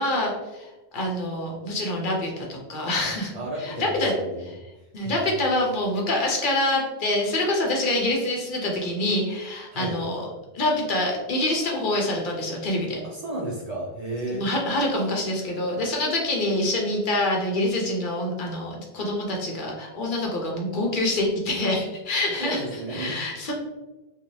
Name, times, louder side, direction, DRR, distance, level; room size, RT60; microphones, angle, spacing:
voice 1, 0.0-3.3 3.6-4.1 4.9-10.3 10.5-13.0 14.3-22.6 22.9-23.5, left 1 dB, 60° left, -1 dB, 0.7 m, -26 dB
voice 2, 3.3-5.1 9.7-10.0 13.0-14.5 22.4-23.2, right 1 dB, 50° right, -3 dB, 0.5 m, -33 dB
2.6 x 2.3 x 3.0 m, 1.1 s
omnidirectional pair, 1.0 m